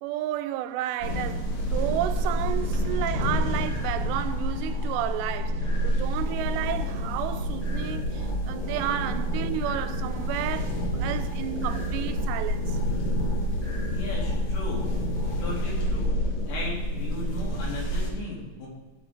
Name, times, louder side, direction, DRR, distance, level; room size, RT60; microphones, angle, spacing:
voice 1, 0.0-12.8, right 12 dB, 85° right, 2.7 m, -32 dB
sound 1, 1.0-18.1, equal, 50° left, 2.2 m, -28 dB
sound 2, 3.6-15.6, left 1 dB, 30° right, 1.3 m, -49 dB
voice 2, 8.6-9.6 13.9-14.9 15.4-18.7, left 1 dB, 80° left, 4.7 m, -37 dB
14.5 x 5.7 x 4.3 m
omnidirectional pair, 4.9 m